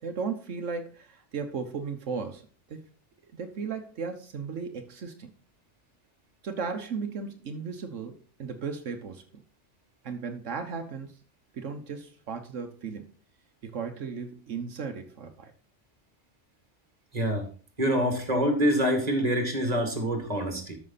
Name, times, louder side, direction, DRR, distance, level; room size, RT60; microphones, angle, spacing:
voice 1, 0.0-2.4 2.7-2.8 3.3-5.3 6.4-9.4 10.0-11.1 11.5-13.1 13.6-15.5, right 5 dB, 85° right, 5 dB, 1.4 m, -36 dB
voice 2, 17.1-17.4 17.8-20.8, equal, 35° right, 4 dB, 2.5 m, -26 dB
13.0 x 6.2 x 4.1 m, 0.40 s
omnidirectional pair, 1.2 m